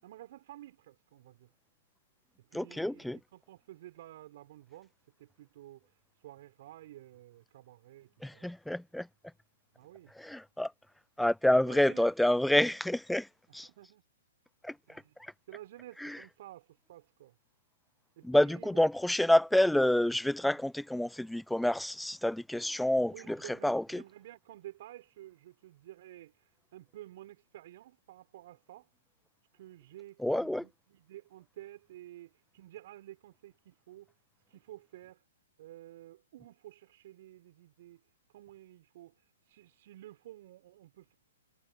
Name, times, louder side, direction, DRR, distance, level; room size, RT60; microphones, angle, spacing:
voice 1, 0.0-1.5 2.4-8.5 9.7-10.1 11.6-12.1 13.5-14.0 14.9-15.1 15.5-17.3 18.2-18.9 20.5-20.6 23.1-28.9 29.5-34.1 34.5-35.2 35.6-38.0 38.3-41.1, right 14 dB, 55° right, 5.1 m, -52 dB
voice 2, 2.5-3.2 8.2-9.1 10.2-10.7 11.2-13.3 13.5-13.7 14.6-15.0 16.0-16.2 18.2-24.0 30.2-30.6, left 1 dB, ahead, 0.3 m, -28 dB
hypercardioid pair, 120°, 0 cm